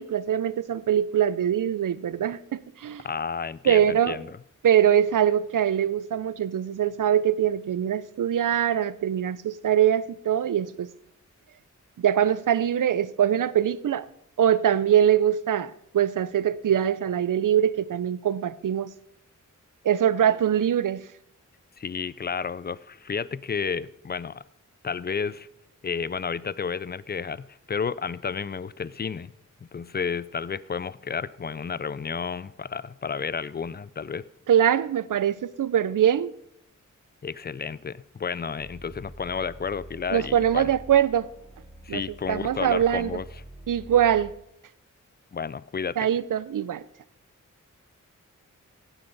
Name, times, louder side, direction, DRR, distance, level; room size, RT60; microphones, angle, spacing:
voice 1, 0.0-3.0 3.7-4.2 4.6-10.9 12.0-14.1 14.4-18.9 19.8-21.0 34.5-36.3 40.1-41.3 41.9-42.0 42.3-43.2 43.7-44.3 46.0-46.8, right 9 dB, 80° right, 0.6 m, -23 dB
voice 2, 3.0-4.3 21.8-24.4 24.8-25.5 25.8-29.3 29.7-34.3 37.2-40.7 41.8-43.2 45.3-46.1, left 6 dB, 30° left, 0.4 m, -31 dB
sound 1, 38.6-44.3, right 1 dB, 10° right, 4.4 m, -45 dB
16.5 x 9.0 x 4.0 m
wide cardioid pair, 90°, 32 cm